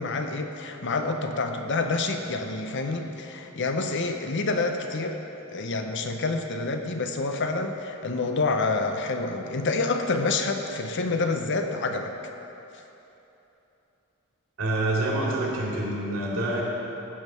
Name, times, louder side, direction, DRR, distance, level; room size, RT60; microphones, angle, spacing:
voice 1, 0.0-5.2 5.5-12.1, left 3 dB, 55° left, 5 dB, 0.7 m, -28 dB
voice 2, 14.6-16.6, right 1 dB, 70° right, -4 dB, 2.6 m, -27 dB
15.5 x 5.4 x 5.6 m, 3.0 s
head